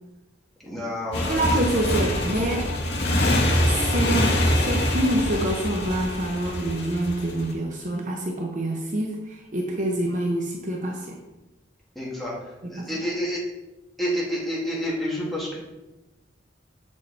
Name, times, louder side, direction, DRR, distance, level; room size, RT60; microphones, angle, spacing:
voice 1, 0.6-1.4 1.7-1.8 11.9-12.3 12.7-13.4 14.0-15.6, equal, ahead, -6 dB, 2.5 m, -29 dB
Motorcycle, 1.1-7.5, left 1 dB, 60° left, 1.6 m, -24 dB
voice 2, 1.3-2.7 3.6-11.2 12.6-13.0, right 1 dB, 40° right, 0 dB, 0.9 m, -26 dB
7.1 x 6.3 x 4.3 m, 1.0 s
head